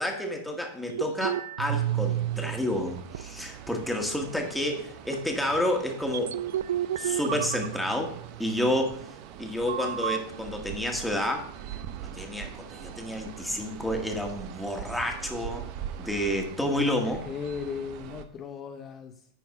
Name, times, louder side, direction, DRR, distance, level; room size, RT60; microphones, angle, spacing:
voice 1, 0.0-6.3 7.0-9.0 9.4-11.5 12.0-15.7 16.0-17.2, left 1 dB, 5° left, 2 dB, 1.8 m, -30 dB
sound 1, 0.9-2.6 3.0-3.9 4.4-4.5 5.1-5.3 6.0-8.5 9.7-10.2, right 11 dB, 75° right, 0.3 m, -31 dB
sound 2, 1.7-18.2, right 10 dB, 55° right, 0.9 m, -43 dB
voice 2, 16.6-19.3, left 6 dB, 35° left, 5 dB, 0.7 m, -37 dB
9.9 x 4.6 x 4.8 m, 0.63 s
hypercardioid pair, 100°, 0 cm